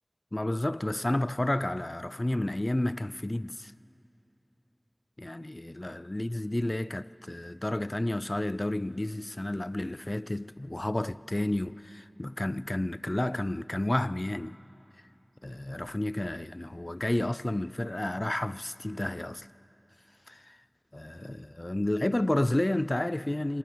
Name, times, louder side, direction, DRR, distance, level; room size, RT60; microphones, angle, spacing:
voice 1, 0.3-3.7 5.2-14.6 15.4-19.5 20.3-20.6 20.9-23.6, left 1 dB, 35° left, 0.4 m, -31 dB
30.0 x 25.0 x 4.7 m
wide cardioid pair, 45°, 0 cm